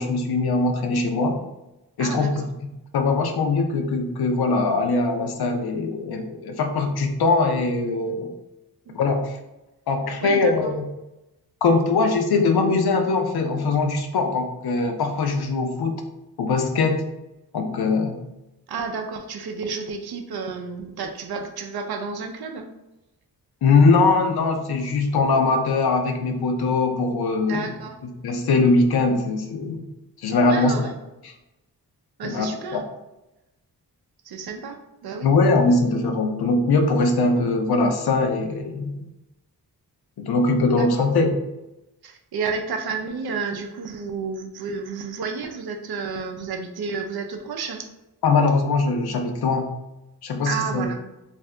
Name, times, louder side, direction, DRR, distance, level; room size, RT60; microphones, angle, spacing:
voice 1, 0.0-1.4 2.0-2.5 2.9-8.3 8.9-9.4 9.9-10.8 11.6-15.9 16.4-17.0 17.5-18.2 23.6-27.7 28.2-29.9 30.2-30.9 31.2-31.3 32.2-32.8 35.2-39.1 40.2-41.4 48.2-49.7 50.2-50.9, left 3 dB, 70° left, 5 dB, 0.5 m, -21 dB
voice 2, 2.0-2.5 8.9-9.0 10.2-10.7 18.7-22.7 27.5-28.0 30.4-30.9 32.2-32.8 34.3-35.3 40.8-41.1 42.0-47.9 50.4-51.0, right 5 dB, 70° right, 5 dB, 0.5 m, -31 dB
2.6 x 2.5 x 3.2 m, 0.95 s
wide cardioid pair, 120°, 39 cm